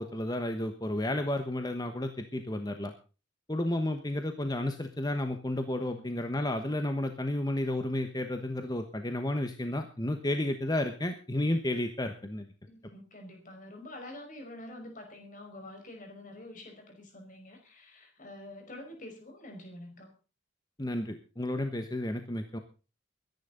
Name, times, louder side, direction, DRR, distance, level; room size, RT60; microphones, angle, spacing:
voice 1, 0.0-2.9 3.5-12.5 20.8-22.6, left 1 dB, 20° left, 6 dB, 1.1 m, -32 dB
voice 2, 12.7-20.1, left 1 dB, 40° left, 3 dB, 5.2 m, -47 dB
23.0 x 10.5 x 3.9 m, 0.35 s
head